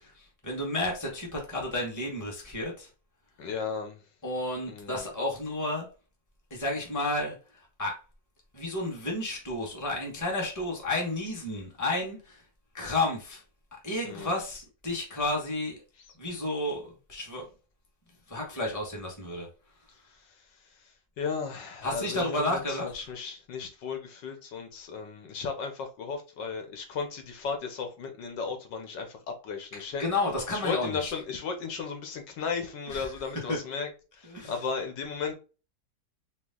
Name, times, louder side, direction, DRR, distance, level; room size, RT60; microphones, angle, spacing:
voice 1, 0.4-2.9 4.2-5.9 6.5-7.4 7.8-8.0 8.5-12.4 12.7-13.4 13.8-15.8 16.2-17.5 18.3-19.5 21.8-22.9 30.0-31.1 32.9-33.1 33.5-33.6 34.3-34.5, left 2 dB, 10° left, 1.1 m, -31 dB
voice 2, 3.4-4.0 4.7-5.1 14.0-14.4 19.9-30.0 30.5-35.3, left 5 dB, 80° left, 1.5 m, -35 dB
4.5 x 2.3 x 3.7 m
omnidirectional pair, 1.9 m